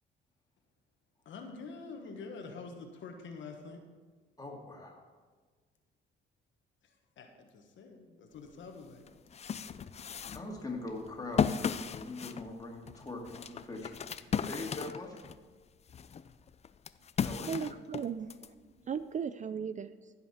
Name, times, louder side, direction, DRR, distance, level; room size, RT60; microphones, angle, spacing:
voice 1, 1.2-3.8 6.8-9.1 9.4-9.5 14.5-14.6, left 4 dB, 70° left, 4 dB, 1.3 m, -47 dB
voice 2, 4.4-5.0 10.3-15.2 17.2-17.7, left 2 dB, 20° left, -1 dB, 2.3 m, -42 dB
sound 1, 8.5-8.6 9.1-15.4 15.9-18.5, left 7 dB, 35° left, 0.4 m, -36 dB
voice 3, 17.5-20.1, right 7 dB, 40° right, 12 dB, 0.4 m, -37 dB
15.5 x 5.7 x 4.3 m, 1.5 s
cardioid pair, 90°, 20 cm